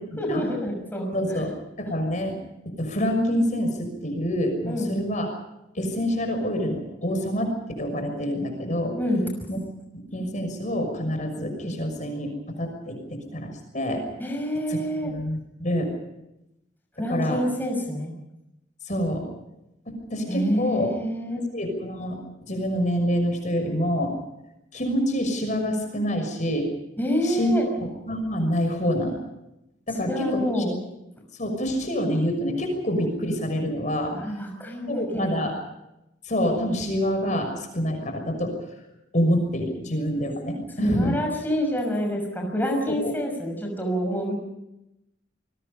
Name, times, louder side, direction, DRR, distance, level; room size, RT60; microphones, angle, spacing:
voice 1, 0.2-1.1 4.6-4.9 9.0-9.3 14.2-15.1 17.0-18.1 20.3-21.4 27.0-27.6 30.1-30.8 34.1-35.5 40.8-44.3, equal, 10° left, 1 dB, 5.9 m, -27 dB
voice 2, 1.1-1.5 1.8-2.3 2.8-5.3 5.7-9.0 9.5-9.6 9.9-12.3 12.6-14.0 14.7-14.8 15.0-15.9 17.1-17.4 18.8-19.2 19.9-20.9 21.5-22.2 22.4-24.2 24.7-26.7 27.2-27.5 27.8-29.2 29.9-30.6 31.4-34.1 34.9-35.5 36.3-38.5 39.1-41.1 42.9-43.1, equal, 40° left, 5 dB, 6.2 m, -26 dB
29.0 x 21.5 x 5.5 m, 0.88 s
head